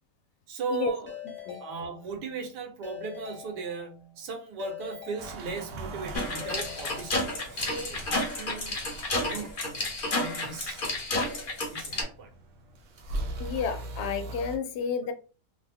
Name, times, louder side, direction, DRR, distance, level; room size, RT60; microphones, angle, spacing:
voice 1, 0.5-1.1 1.6-8.7 9.2-9.5 10.2-10.8 11.7-12.3, right 4 dB, 85° right, 3 dB, 1.5 m, -37 dB
Keyboard (musical) / Ringtone, 1.1-2.4 2.8-4.1 4.6-5.9 6.4-7.7, left 9 dB, 15° left, 0.5 m, -44 dB
sound 1, 5.2-14.6, right 2 dB, 60° right, 0.8 m, -41 dB
sound 2, 6.1-12.0, left 2 dB, 40° left, 0.8 m, -31 dB
voice 2, 13.4-15.1, left 6 dB, 80° left, 7 dB, 1.1 m, -31 dB
3.3 x 2.0 x 3.4 m, 0.34 s
omnidirectional pair, 1.8 m